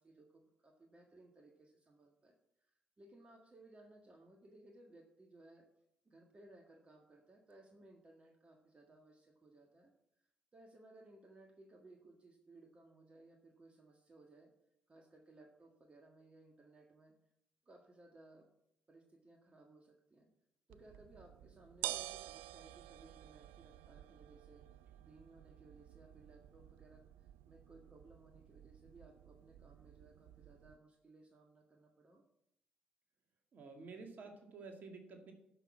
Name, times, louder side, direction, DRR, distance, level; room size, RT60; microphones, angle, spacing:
voice 1, 0.0-2.4 2.6-5.7 6.1-9.9 10.5-14.5 14.9-17.1 17.7-18.5 18.9-20.3 20.7-24.7 25.0-32.2, right 2 dB, 30° right, 2 dB, 1.7 m, -61 dB
sound 1, 20.7-30.8, right 14 dB, 65° right, 0.4 m, -50 dB
voice 2, 33.5-35.3, right 4 dB, 45° right, 4 dB, 2.1 m, -51 dB
12.0 x 6.1 x 7.3 m, 0.79 s
figure-of-eight pair, 45°, 4 cm